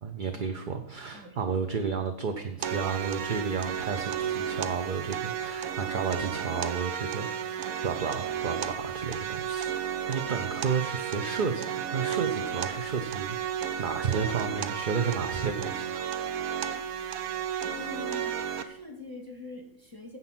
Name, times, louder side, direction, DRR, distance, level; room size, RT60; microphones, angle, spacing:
voice 1, 0.0-16.0, right 6 dB, 45° right, 5 dB, 0.8 m, -32 dB
sound 1, 2.6-18.6, right 8 dB, 90° right, 1.2 m, -33 dB
voice 2, 17.7-20.2, left 3 dB, 15° right, 3 dB, 1.9 m, -44 dB
9.7 x 7.6 x 6.0 m, 0.73 s
omnidirectional pair, 1.5 m